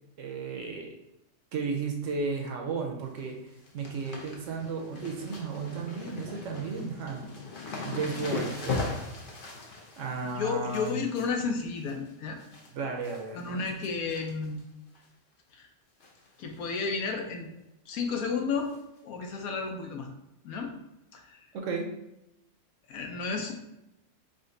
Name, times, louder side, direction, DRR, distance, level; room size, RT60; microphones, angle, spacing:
voice 1, 0.2-0.9 1.5-3.4 3.7-7.2 7.8-9.0 10.0-11.0 12.7-13.8 21.5-21.9, right 4 dB, 65° right, 2 dB, 0.9 m, -34 dB
sound 1, 2.9-3.2 3.5-12.7 13.0-13.5 13.8-14.6 14.9-15.0 16.0-16.3 16.5-16.6 17.0-17.1 18.7-18.8 19.5-19.6, left 4 dB, 50° left, 0.7 m, -39 dB
voice 2, 10.2-12.4 13.3-14.6 15.5-15.7 16.4-17.5 17.9-18.7 19.0-20.1 20.4-20.7 21.1-21.5 22.9-23.5, left 4 dB, 75° left, 3 dB, 1.1 m, -32 dB
5.0 x 2.2 x 3.7 m, 0.88 s
omnidirectional pair, 1.5 m